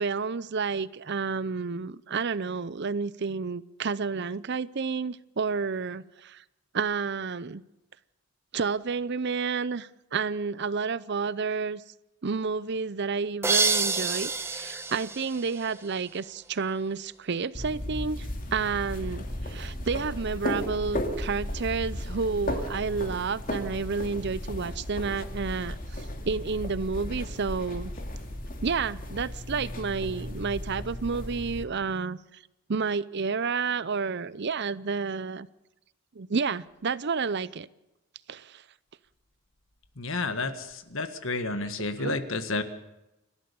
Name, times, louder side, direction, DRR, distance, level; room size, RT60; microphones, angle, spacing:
voice 1, 0.0-6.4 6.7-7.6 8.5-11.8 12.2-27.9 28.6-32.2 32.7-35.5 36.2-37.7 38.3-38.6 42.0-42.2, right 5 dB, 50° right, 0.6 m, -30 dB
sound 1, 13.4-16.2, right 4 dB, 10° right, 1.1 m, -28 dB
sound 2, 17.5-31.6, left 1 dB, 40° left, 2.6 m, -35 dB
voice 2, 40.0-42.6, left 3 dB, 60° left, 1.7 m, -31 dB
29.5 x 12.5 x 6.9 m
head